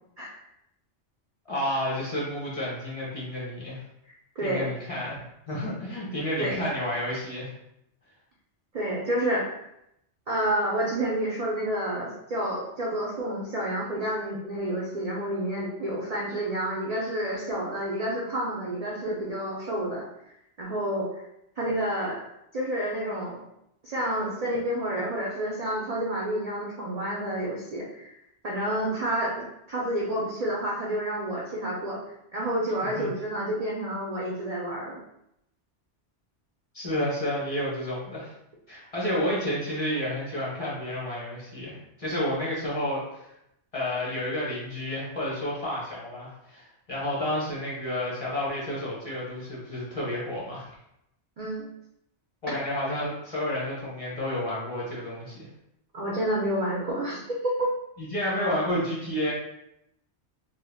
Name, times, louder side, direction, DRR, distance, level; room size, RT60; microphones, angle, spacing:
voice 1, 1.5-3.8 4.4-7.5 33.0-33.1 36.7-38.3 38.7-43.3 43.7-50.7 52.4-55.5 58.0-59.3, left 1 dB, 35° left, -6 dB, 0.8 m, -30 dB
voice 2, 4.4-4.7 6.4-6.6 8.7-9.5 10.3-20.0 20.6-21.1 21.6-22.2 22.5-23.4 23.8-28.1 28.4-29.3 29.7-32.0 32.3-35.0 51.4-51.7 55.9-57.7, right 1 dB, 55° right, -4 dB, 0.4 m, -29 dB
2.2 x 2.2 x 3.3 m, 0.80 s
omnidirectional pair, 1.2 m